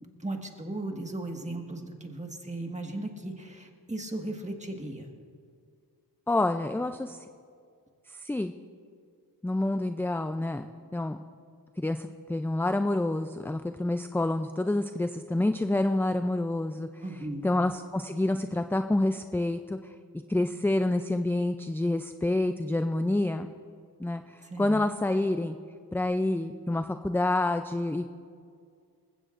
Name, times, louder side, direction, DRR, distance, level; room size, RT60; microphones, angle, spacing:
voice 1, 0.2-5.1 17.0-17.5 24.4-24.8, right 2 dB, 15° right, 3 dB, 1.6 m, -36 dB
voice 2, 6.3-7.2 8.1-8.5 9.4-11.2 11.8-17.0 17.4-19.9 20.3-23.5 24.0-25.6 25.9-28.1, left 2 dB, 5° left, 8 dB, 0.4 m, -28 dB
20.0 x 16.0 x 2.5 m, 2.2 s
cardioid pair, 70°, 40 cm